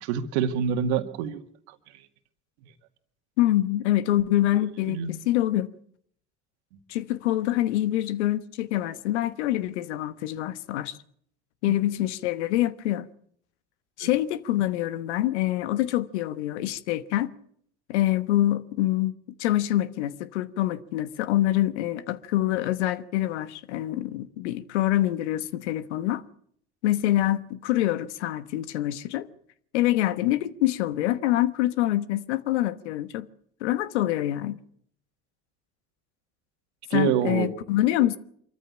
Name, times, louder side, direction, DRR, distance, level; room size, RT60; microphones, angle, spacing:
voice 1, 0.0-1.4 1.7-1.8 4.9-5.2 11.7-11.8 14.0-14.1 36.9-37.5, right 8 dB, 80° right, 2.1 m, -26 dB
voice 2, 3.4-5.7 6.9-11.0 11.6-13.1 14.0-17.3 17.9-19.1 19.4-26.2 26.8-29.3 29.7-33.3 33.6-34.6 36.9-38.2, left 14 dB, 85° left, 1.2 m, -25 dB
24.5 x 14.0 x 8.7 m
hypercardioid pair, 70°, 33 cm